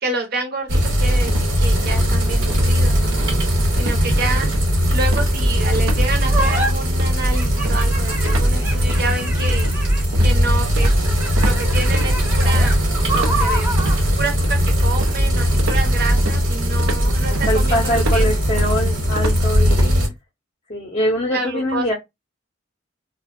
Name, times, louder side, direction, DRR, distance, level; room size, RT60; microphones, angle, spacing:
voice 1, 0.0-3.4 3.8-4.5 4.9-9.7 10.2-11.1 11.4-12.8 13.1-13.7 14.2-18.3 19.8-20.1 21.3-21.9, right 3 dB, 50° right, 0.7 m, -28 dB
sound 1, 0.7-20.1, equal, 65° right, 1.0 m, -18 dB
sound 2, 0.7-1.6 1.9-2.2 2.5-2.7 3.1-3.5 3.8-4.0 4.4-4.8 5.1-6.1 6.4-6.6 7.0-11.6 11.9-12.7 13.1-14.0 14.4-15.3 15.6-19.9, right 2 dB, 85° right, 0.5 m, -31 dB
voice 2, 3.0-3.4 9.5-9.8 17.1-19.9 20.7-21.9, equal, 30° left, 0.5 m, -24 dB
sound 3, 6.3-6.7 7.3-10.1 10.8-14.0, right 2 dB, 10° right, 0.6 m, -28 dB
2.5 x 2.0 x 2.4 m
head